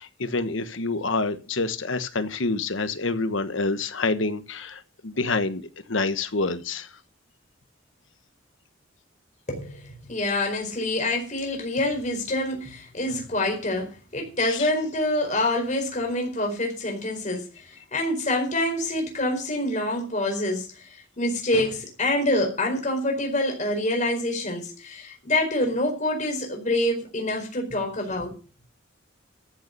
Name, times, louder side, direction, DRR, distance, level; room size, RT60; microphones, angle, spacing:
voice 1, 0.0-6.9 14.5-14.7, left 3 dB, 70° left, 1.3 m, -27 dB
voice 2, 9.5-28.3, left 1 dB, 35° left, 4.6 m, -26 dB
14.5 x 7.0 x 6.7 m
head